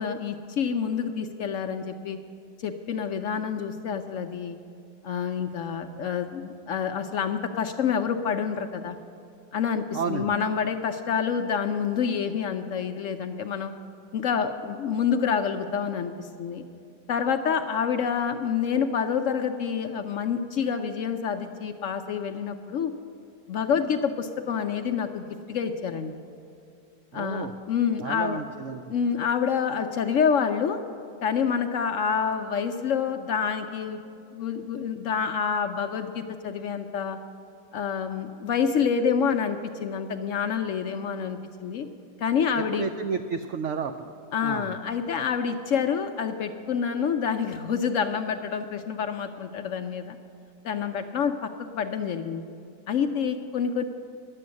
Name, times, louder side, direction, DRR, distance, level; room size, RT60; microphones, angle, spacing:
voice 1, 0.0-2.2 2.6-4.6 5.0-9.0 9.5-13.7 14.1-16.6 17.1-22.9 23.5-26.1 27.1-28.4 28.9-30.8 31.2-34.0 34.3-37.2 37.7-41.9 42.2-42.9 44.3-50.2 50.6-52.4 52.9-53.8, left 7 dB, 70° left, 6 dB, 0.7 m, -27 dB
voice 2, 9.9-10.3 27.1-27.5 28.0-28.9 42.5-44.1 44.4-44.7, right 5 dB, 85° right, 8 dB, 0.6 m, -32 dB
11.0 x 7.7 x 9.5 m, 2.6 s
omnidirectional pair, 1.8 m